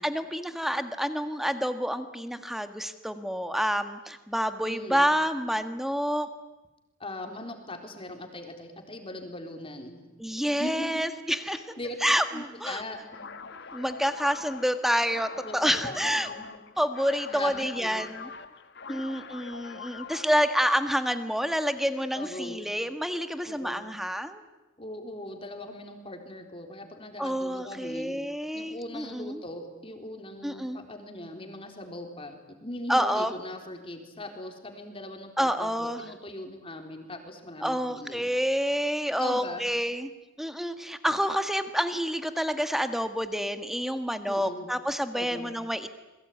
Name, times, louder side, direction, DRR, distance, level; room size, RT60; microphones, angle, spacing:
voice 1, 0.0-6.3 10.2-11.6 12.0-12.8 13.7-16.3 16.8-18.3 18.9-24.4 27.2-29.4 30.4-30.8 32.9-33.3 35.4-36.0 37.6-40.1 40.4-45.9, equal, ahead, 9 dB, 1.6 m, -28 dB
voice 2, 4.6-5.1 7.0-10.0 10.6-11.1 11.8-12.0 12.3-13.3 15.4-16.6 17.3-18.1 22.1-22.7 23.5-23.9 24.8-28.2 28.5-38.3 39.2-39.7 44.3-44.7 45.1-45.5, left 1 dB, 25° left, 4 dB, 4.0 m, -40 dB
sound 1, 13.1-20.5, left 5 dB, 55° left, 1.7 m, -43 dB
28.5 x 22.0 x 9.5 m, 1.1 s
head